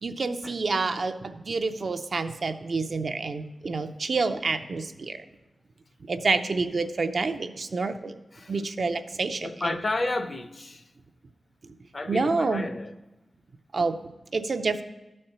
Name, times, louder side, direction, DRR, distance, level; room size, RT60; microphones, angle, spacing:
voice 1, 0.0-5.2 6.1-8.2 8.5-9.7 12.1-12.7 13.7-14.0 14.3-14.8, right 3 dB, 50° right, 7 dB, 0.5 m, -28 dB
voice 2, 9.4-10.8 11.9-12.9, left 2 dB, 35° left, 10 dB, 0.6 m, -31 dB
12.5 x 4.3 x 6.6 m, 1.0 s
wide cardioid pair, 125°, 0 cm